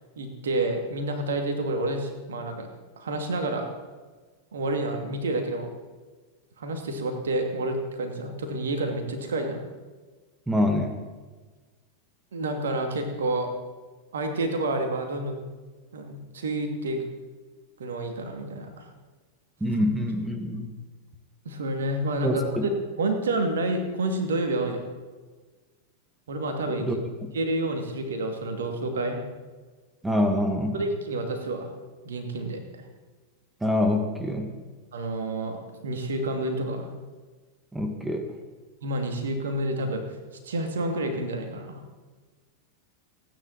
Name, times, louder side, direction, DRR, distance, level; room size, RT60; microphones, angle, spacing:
voice 1, 0.2-2.7 3.0-3.7 4.5-5.7 6.6-9.6 12.3-13.5 14.1-15.4 15.9-17.0 17.8-18.9 21.4-24.9 26.3-26.9 27.3-29.2 30.7-31.7 32.0-32.8 34.9-36.9 38.8-40.0 40.4-41.8, right 2 dB, 65° right, 5 dB, 2.5 m, -29 dB
voice 2, 10.5-11.0 19.6-20.7 22.2-22.6 26.8-27.0 30.0-30.8 33.6-34.5 37.7-38.3, left 1 dB, 5° right, 6 dB, 1.8 m, -25 dB
29.5 x 9.9 x 4.2 m, 1.4 s
figure-of-eight pair, 90°, 0 cm